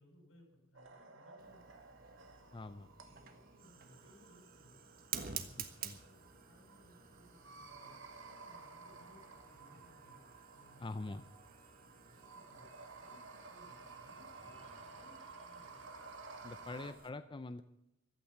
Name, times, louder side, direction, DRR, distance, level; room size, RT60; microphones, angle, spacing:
voice 1, 0.0-1.6 3.0-4.8 5.3-10.2 10.5-11.3 11.8-15.9, left 1 dB, 80° left, 2 dB, 7.3 m, -64 dB
sound 1, 0.7-16.9, right 4 dB, 80° right, 2.2 m, -55 dB
sound 2, 0.8-16.8, right 4 dB, 30° right, 2.3 m, -69 dB
Fire, 1.4-17.1, right 8 dB, 50° right, 1.5 m, -51 dB
voice 2, 2.5-2.9 5.8-6.0 10.8-11.2 16.4-17.6, left 2 dB, 25° left, 11 dB, 0.5 m, -44 dB
15.5 x 12.0 x 7.1 m, 0.87 s
head